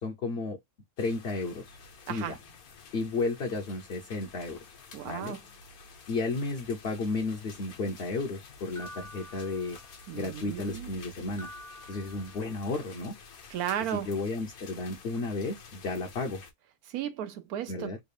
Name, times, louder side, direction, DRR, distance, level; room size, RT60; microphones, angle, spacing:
voice 1, 0.0-0.6 1.0-1.8 2.1-2.4 2.9-4.6 5.0-5.4 6.1-9.8 10.1-11.5 11.9-13.2 13.9-16.4 17.7-18.0, left 3 dB, 55° left, 0.8 m, -33 dB
sound 1, 1.0-16.5, left 4 dB, 75° left, 1.4 m, -50 dB
voice 2, 4.9-5.4 10.1-10.9 13.5-14.1 16.9-18.0, right 10 dB, 85° right, 1.2 m, -35 dB
sound 2, 8.8-10.2 11.4-12.8, left 1 dB, 30° left, 0.3 m, -48 dB
3.6 x 2.4 x 3.2 m
omnidirectional pair, 1.5 m